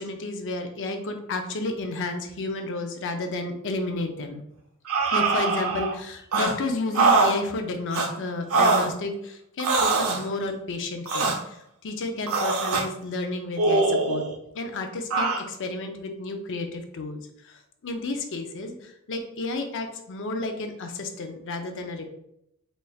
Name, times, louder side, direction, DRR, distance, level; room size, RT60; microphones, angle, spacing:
voice 1, 0.0-4.4 5.0-14.3 14.5-22.1, left 2 dB, 60° left, 5 dB, 0.5 m, -32 dB
sound 1, 4.9-6.0 6.3-6.5 6.9-7.3 7.9-8.1 8.5-8.9 9.6-10.2 11.1-11.4 12.3-12.9 13.6-14.3 15.1-15.4, right 3 dB, 75° right, 0.7 m, -22 dB
4.2 x 3.2 x 2.3 m, 0.78 s
head